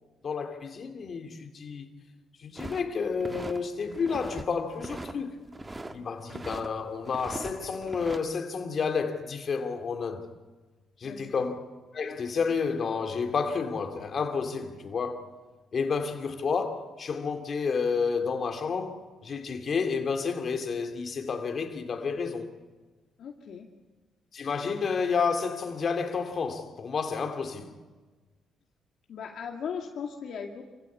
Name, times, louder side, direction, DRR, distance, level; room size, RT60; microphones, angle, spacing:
voice 1, 0.2-1.9 2.4-5.4 5.9-10.3 11.0-11.6 11.9-15.3 15.7-22.5 24.3-27.7, left 5 dB, 50° left, 2.7 m, -30 dB
sound 1, 2.6-3.6 3.9-4.5 4.7-6.0 6.3-6.7 7.1-8.2, right 2 dB, 20° right, 1.6 m, -39 dB
voice 2, 11.0-11.3 23.2-23.7 29.1-30.7, left 6 dB, 65° left, 2.2 m, -38 dB
27.0 x 16.0 x 8.6 m
cardioid pair, 90°, 0 cm